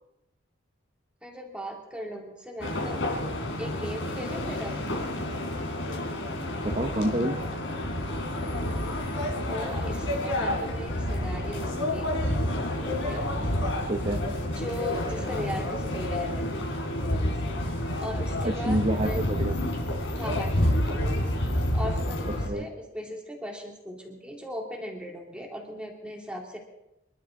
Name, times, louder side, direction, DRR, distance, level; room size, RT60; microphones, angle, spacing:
voice 1, 1.2-3.0 3.5-4.8 9.5-12.1 12.9-13.3 14.6-16.5 17.6-17.7 18.0-19.2 20.2-20.8 21.7-26.6, equal, 5° right, 0 dB, 2.7 m, -38 dB
sound 1, 2.6-22.5, left 1 dB, 75° left, 3.8 m, -29 dB
voice 2, 6.6-7.4 13.9-14.2 18.4-19.7 22.4-22.7, right 1 dB, 35° right, 3 dB, 1.0 m, -28 dB
26.0 x 12.5 x 3.8 m, 0.86 s
head